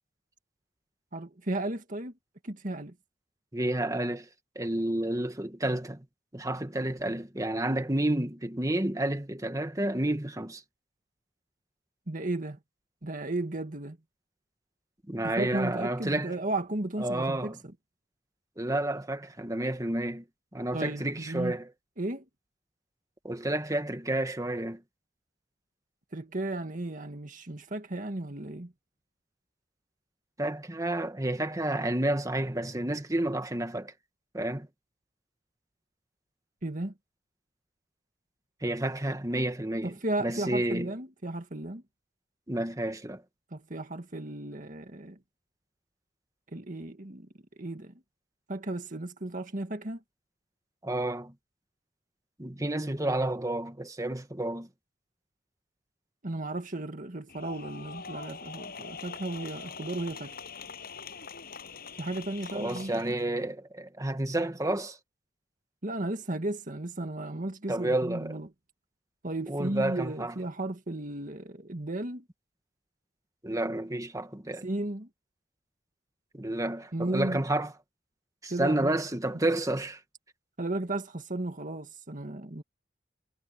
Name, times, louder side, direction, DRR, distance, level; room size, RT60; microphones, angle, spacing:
voice 1, 1.1-2.1 2.4-3.0 12.1-12.6 13.0-14.0 15.2-17.6 20.7-21.6 22.0-22.2 26.1-28.7 36.6-36.9 39.8-41.8 43.5-45.2 46.5-47.3 47.6-47.9 48.5-50.0 56.2-60.4 62.0-63.2 65.8-68.5 69.2-72.2 74.6-75.1 76.9-77.4 78.5-78.9 80.6-82.6, right 2 dB, 45° right, 1.9 m, -34 dB
voice 2, 3.5-4.3 4.5-6.0 6.3-10.6 15.1-16.3 17.0-17.6 18.6-20.2 20.5-21.7 23.2-24.8 30.4-33.9 34.3-34.7 38.6-39.9 40.2-40.9 42.5-43.2 50.8-51.3 52.4-54.7 62.5-65.0 67.7-68.3 69.5-70.3 73.4-74.7 76.3-77.7 78.4-80.0, right 1 dB, 20° right, 1.7 m, -30 dB
sound 1, 57.3-63.2, left 5 dB, 55° left, 7.9 m, -43 dB
head